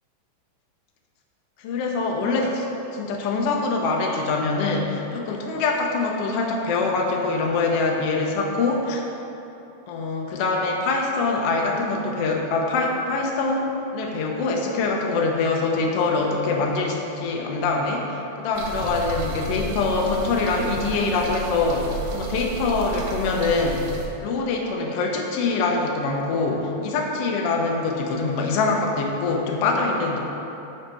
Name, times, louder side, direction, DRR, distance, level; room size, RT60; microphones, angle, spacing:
voice 1, 1.6-2.7 2.9-9.0 9.9-23.9 24.2-30.2, left 3 dB, 75° left, 0 dB, 1.4 m, -24 dB
sound 1, 18.5-24.1, right 3 dB, 90° right, 2.5 m, -33 dB
12.0 x 4.9 x 4.4 m, 3.0 s
omnidirectional pair, 3.9 m